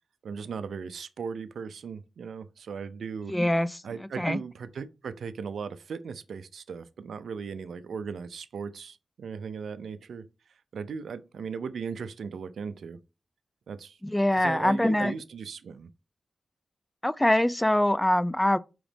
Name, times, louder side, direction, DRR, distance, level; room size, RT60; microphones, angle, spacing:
voice 1, 0.2-3.3 3.8-13.0 13.7-14.0 14.4-15.9, right 6 dB, 85° right, 0.4 m, -37 dB
voice 2, 3.3-3.8 4.2-4.4 14.0-15.1 17.0-18.6, left 1 dB, 10° left, 0.3 m, -24 dB
5.0 x 3.0 x 3.3 m
cardioid pair, 65°, 0 cm